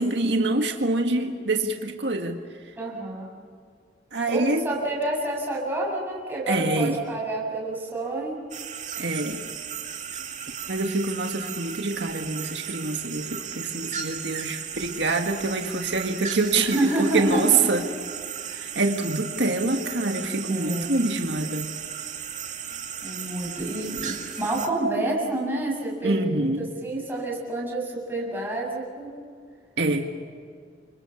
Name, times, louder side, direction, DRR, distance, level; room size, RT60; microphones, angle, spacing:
voice 1, 0.0-2.4 4.1-4.7 6.5-7.0 9.0-9.4 10.7-16.8 17.1-17.8 18.6-21.7 26.0-26.7 29.8-30.1, right 3 dB, 80° right, 3 dB, 1.9 m, -25 dB
voice 2, 2.8-3.3 4.3-8.4 16.6-17.6 18.5-18.7 20.5-20.9 23.0-29.1, right 2 dB, 10° right, -3 dB, 7.2 m, -28 dB
sound 1, 8.5-24.7, right 8 dB, 40° right, 2.5 m, -36 dB
29.5 x 26.0 x 7.2 m, 2.1 s
head